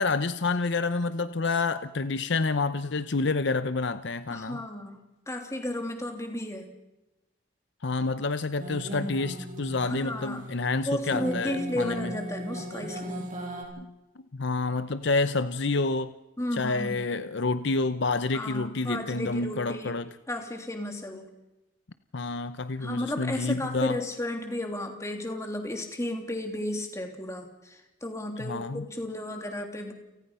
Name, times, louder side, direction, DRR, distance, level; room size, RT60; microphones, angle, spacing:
voice 1, 0.0-4.6 7.8-12.1 14.3-16.1 16.5-20.1 22.1-24.0 28.4-28.9, left 3 dB, 60° left, 12 dB, 0.8 m, -28 dB
voice 2, 4.3-5.0 5.3-6.7 9.8-10.4 10.8-13.3 16.4-17.1 18.3-19.9 20.3-21.3 22.8-29.9, left 1 dB, 15° left, 3 dB, 3.1 m, -33 dB
sound 1, 8.6-13.6, equal, 40° right, 7.8 m, -37 dB
30.0 x 18.5 x 5.7 m, 0.98 s
head